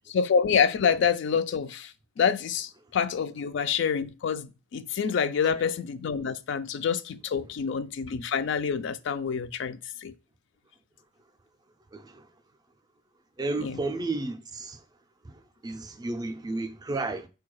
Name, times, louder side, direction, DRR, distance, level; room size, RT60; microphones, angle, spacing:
voice 1, 0.1-10.1 13.6-13.8, left 6 dB, 55° left, 0.3 m, -27 dB
voice 2, 11.9-12.3 13.4-14.8 15.2-17.3, right 2 dB, 20° right, 0.3 m, -33 dB
4.4 x 2.3 x 4.5 m
head